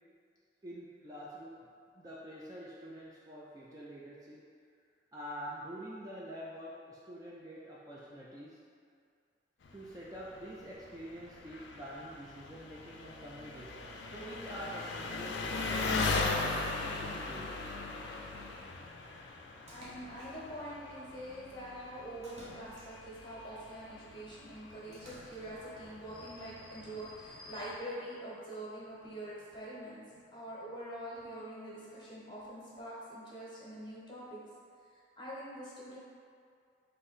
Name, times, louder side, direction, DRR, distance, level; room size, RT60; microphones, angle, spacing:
voice 1, 0.6-1.7 2.0-4.4 5.1-8.6 9.7-16.1 16.8-17.5, equal, 20° right, -6 dB, 0.3 m, -46 dB
Engine, 9.6-27.8, left 3 dB, 65° left, 0.4 m, -39 dB
voice 2, 19.7-34.4 34.9-36.0, right 1 dB, 25° left, -7 dB, 1.0 m, -45 dB
Splash splatter, 19.7-20.7 22.2-23.3 24.9-25.7, equal, 40° right, 0.8 m, -54 dB
3.8 x 2.6 x 4.1 m, 2.3 s
head